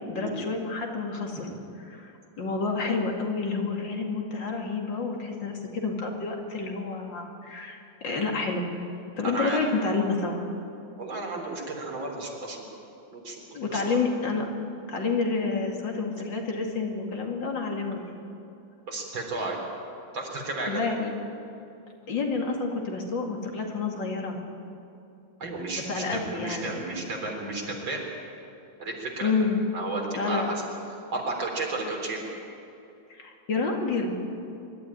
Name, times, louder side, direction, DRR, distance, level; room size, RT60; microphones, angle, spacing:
voice 1, 0.1-1.5 1.8-2.1 2.4-7.8 8.0-8.7 9.2-10.4 13.5-14.5 14.9-18.0 20.7-21.1 22.1-24.4 25.8-26.9 29.2-29.6 30.1-30.5 33.1-34.1, left 4 dB, 70° left, 1 dB, 3.0 m, -29 dB
voice 2, 9.2-9.6 11.0-12.6 13.1-14.0 18.9-19.6 20.1-20.8 25.4-28.0 28.8-29.3 29.7-30.6 31.1-32.2, right 2 dB, 85° right, 0 dB, 4.4 m, -33 dB
24.0 x 12.5 x 10.0 m, 2.8 s
omnidirectional pair, 2.1 m